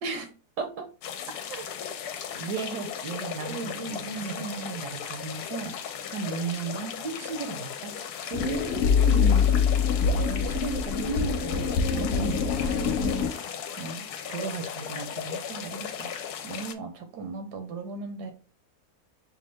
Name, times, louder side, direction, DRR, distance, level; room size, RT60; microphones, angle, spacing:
sound 1, 1.0-16.7, left 8 dB, 75° left, 1.0 m, -37 dB
voice 1, 2.4-8.0 10.0-16.1 16.4-18.3, right 4 dB, 75° right, 7 dB, 1.4 m, -36 dB
voice 2, 3.5-4.7 8.3-9.6 11.9-12.4 12.8-13.3 15.8-15.9, right 4 dB, 60° right, 3 dB, 1.0 m, -34 dB
sound 2, 8.3-13.3, left 6 dB, 90° left, 0.6 m, -24 dB
5.4 x 2.3 x 3.3 m, 0.35 s
omnidirectional pair, 1.8 m